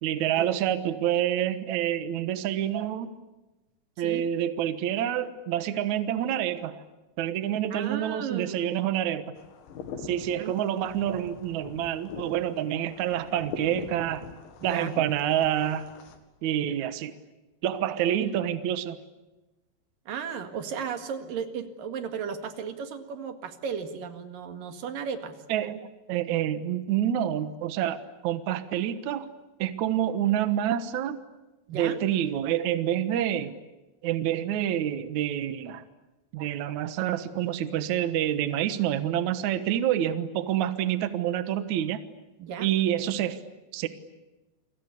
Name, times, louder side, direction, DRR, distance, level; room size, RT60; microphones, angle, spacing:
voice 1, 0.0-3.1 4.0-6.8 7.2-9.3 10.0-14.3 14.6-15.9 16.4-17.1 17.6-19.0 25.5-25.8 26.1-29.3 29.6-31.2 31.7-33.5 34.0-35.8 36.3-42.0 42.6-43.4 43.7-43.9, right 11 dB, 75° right, 11 dB, 1.7 m, -27 dB
voice 2, 7.7-8.6 10.4-10.7 14.6-15.0 18.2-18.3 20.1-25.4 31.7-32.0 42.4-42.7, right 7 dB, 55° right, 8 dB, 3.2 m, -35 dB
sound 1, 9.4-16.2, left 5 dB, 80° left, 4.8 m, -43 dB
29.5 x 24.5 x 8.4 m, 1.1 s
omnidirectional pair, 5.3 m